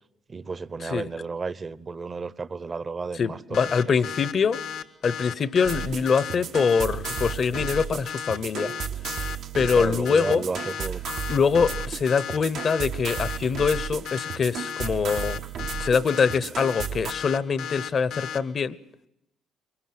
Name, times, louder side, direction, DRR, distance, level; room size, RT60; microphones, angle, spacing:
voice 1, 0.3-3.6 3.9-4.0 9.7-11.0, right 4 dB, 35° right, 0.8 m, -32 dB
voice 2, 3.2-4.6 5.0-8.7 9.5-10.5 11.3-15.4 15.8-18.8, left 6 dB, 50° left, 0.9 m, -24 dB
sound 1, 3.5-18.4, left 8 dB, 80° left, 1.4 m, -34 dB
sound 2, 5.6-17.1, right 8 dB, 70° right, 0.8 m, -34 dB
23.5 x 21.0 x 7.7 m
supercardioid pair, 75°, 0 cm